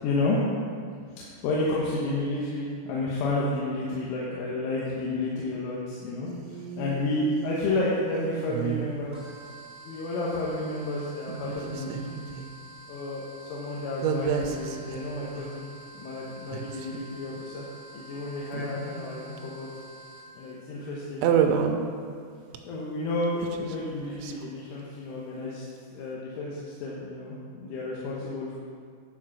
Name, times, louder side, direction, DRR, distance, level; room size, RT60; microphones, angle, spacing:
voice 1, 0.0-0.4 0.7-9.1 9.8-12.0 12.9-15.7 15.9-17.7 17.9-19.7 20.4-21.2 22.7-25.7 26.0-28.6, left 2 dB, 80° left, -5 dB, 3.5 m, -31 dB
Hey are you feeling good, 6.3-9.5 11.3-12.5 14.0-15.6 16.2-16.3 16.5-17.0 18.4-19.4 21.2-22.9 23.1-24.5, right 7 dB, 80° right, 2.7 m, -31 dB
sound 1, 9.1-20.5, right 1 dB, 60° right, 0.5 m, -48 dB
10.5 x 5.0 x 5.9 m, 2.1 s
omnidirectional pair, 5.8 m